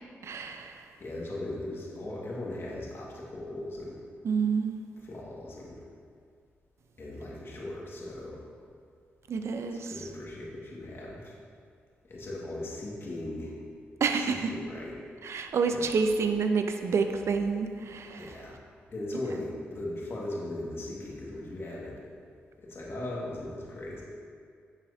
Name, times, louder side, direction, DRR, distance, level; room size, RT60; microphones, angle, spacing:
voice 1, 0.2-0.8 4.2-4.8 9.3-9.9 14.0-14.5 15.2-18.4, right 5 dB, 65° right, 6 dB, 0.6 m, -28 dB
voice 2, 1.0-4.0 5.0-5.8 7.0-8.4 9.9-11.4 12.1-13.5 14.1-15.0 15.7-15.8 18.2-18.5 18.9-22.0 22.6-24.0, left 1 dB, 50° left, -5 dB, 1.9 m, -38 dB
9.9 x 5.8 x 2.8 m, 2.3 s
supercardioid pair, 50°, 5 cm